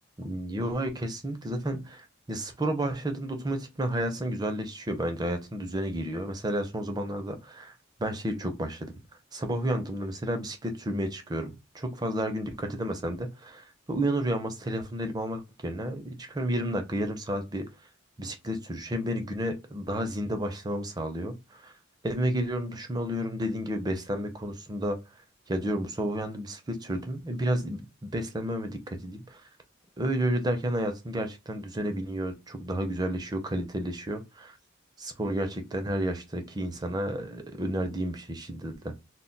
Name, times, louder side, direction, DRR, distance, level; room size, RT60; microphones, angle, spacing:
voice 1, 0.2-7.7 8.0-9.0 9.3-17.7 18.2-21.7 22.0-25.0 25.5-29.4 30.0-34.6 35.0-38.9, right 1 dB, 20° right, 0.4 m, -31 dB
2.2 x 2.1 x 3.8 m
head